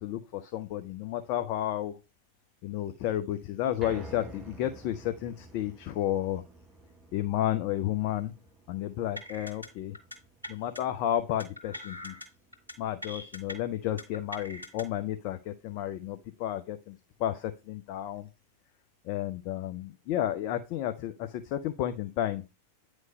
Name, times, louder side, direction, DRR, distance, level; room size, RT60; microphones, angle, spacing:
voice 1, 0.0-2.0 2.6-6.4 7.1-8.3 8.7-10.0 10.5-12.2 12.8-18.3 19.0-22.4, left 12 dB, 45° left, 8 dB, 0.5 m, -32 dB
sound 1, 3.8-16.1 16.5-16.6 17.0-17.1, right 2 dB, 20° right, 1.1 m, -52 dB
sound 2, 9.2-9.7 9.9-10.2 10.4-10.8 11.4-12.3 12.5-12.7 13.0-13.5 14.0-14.8, left 1 dB, 90° left, 1.9 m, -42 dB
9.4 x 3.2 x 5.2 m, 0.29 s
figure-of-eight pair, 90°, 0 cm